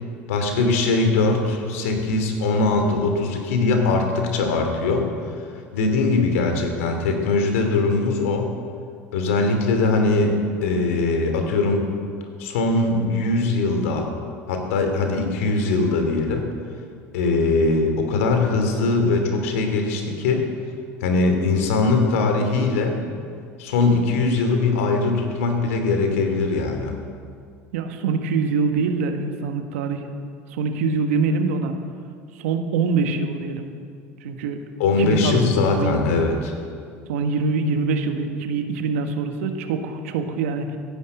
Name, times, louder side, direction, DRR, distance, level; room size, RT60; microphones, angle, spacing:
voice 1, 0.3-5.1 5.7-8.5 9.1-11.8 12.4-14.1 14.5-16.4 17.1-20.5 21.0-23.0 23.6-27.0 34.8-36.5, left 3 dB, 80° left, 4 dB, 2.7 m, -21 dB
voice 2, 27.7-30.1 30.5-31.7 32.4-33.6 34.2-34.6 35.0-35.5 35.7-36.0 37.1-40.7, right 4 dB, 80° right, 6 dB, 1.5 m, -24 dB
14.5 x 11.0 x 8.0 m, 2.2 s
hypercardioid pair, 80°, 7 cm